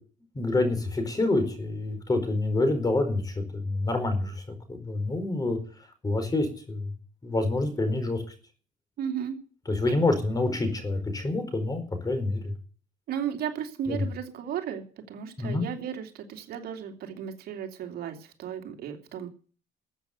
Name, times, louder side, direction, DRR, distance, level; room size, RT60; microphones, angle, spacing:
voice 1, 0.3-5.6 6.0-6.9 7.2-8.2 9.7-12.5 13.9-14.0 15.4-15.7, left 2 dB, 20° left, 8 dB, 4.7 m, -27 dB
voice 2, 9.0-9.4 9.9-10.0 13.1-19.3, right 8 dB, 70° right, 4 dB, 2.7 m, -35 dB
14.0 x 8.1 x 9.4 m, 0.41 s
cardioid pair, 110°, 17 cm